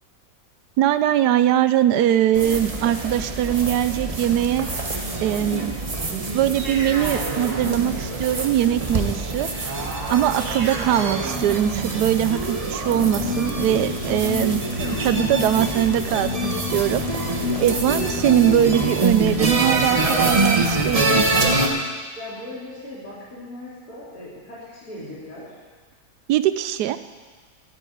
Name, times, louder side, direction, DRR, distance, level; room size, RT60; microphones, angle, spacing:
voice 1, 0.8-4.7 5.2-5.7 6.1-9.8 10.1-14.6 15.0-17.0 17.6-21.3 26.3-27.0, right 11 dB, 85° right, 12 dB, 1.2 m, -21 dB
sound 1, 2.3-21.7, right 2 dB, 25° right, 1.0 m, -25 dB
sound 2, 2.5-3.7 4.6-5.1 6.5-9.2 9.5-12.9 13.8-15.5, right 2 dB, 50° right, 2.0 m, -34 dB
sound 3, 12.9-20.0, left 7 dB, 55° left, 0.7 m, -31 dB
voice 2, 22.2-25.5, left 1 dB, 70° left, -9 dB, 3.6 m, -38 dB
9.3 x 8.3 x 9.4 m, 1.4 s
omnidirectional pair, 1.7 m